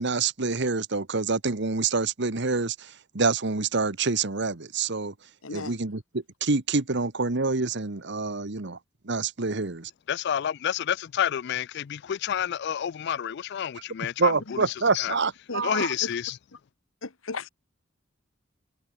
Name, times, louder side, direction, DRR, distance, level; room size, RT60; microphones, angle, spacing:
voice 1, 0.0-5.1 5.5-8.7 9.1-9.8 14.2-15.9, right 4 dB, 60° right, 1.4 m, -27 dB
voice 2, 5.4-5.8 15.5-16.1 17.0-17.5, left 3 dB, 90° left, 1.4 m, -35 dB
voice 3, 10.1-14.6 14.9-15.1 15.6-16.4, left 9 dB, 60° left, 0.4 m, -29 dB
head